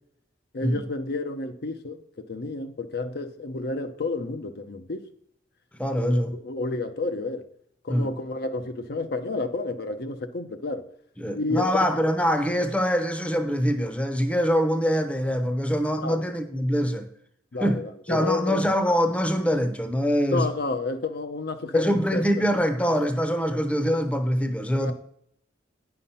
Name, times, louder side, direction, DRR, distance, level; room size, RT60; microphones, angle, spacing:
voice 1, 0.5-2.0 2.3-5.0 5.9-7.4 7.8-10.8 11.3-11.9 16.0-16.2 17.5-18.7 20.3-22.2 23.5-23.6 24.8-24.9, left 3 dB, 60° left, 0.7 m, -30 dB
voice 2, 5.8-6.3 7.9-8.1 11.2-17.1 17.6-20.5 21.7-24.9, equal, 5° left, 0.8 m, -24 dB
9.5 x 5.8 x 5.6 m
head